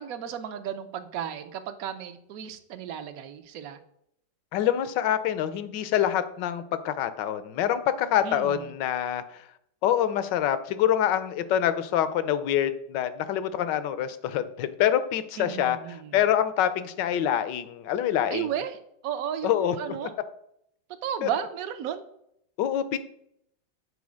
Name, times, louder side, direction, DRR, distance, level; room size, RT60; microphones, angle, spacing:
voice 1, 0.0-3.8 8.2-8.6 15.4-16.2 18.3-20.1 21.0-22.0, right 9 dB, 60° right, 9 dB, 1.0 m, -34 dB
voice 2, 4.5-9.4 9.8-18.5 19.4-20.1 21.2-21.3 22.6-23.0, left 10 dB, 70° left, 13 dB, 1.3 m, -26 dB
8.3 x 4.7 x 6.2 m, 0.74 s
omnidirectional pair, 2.1 m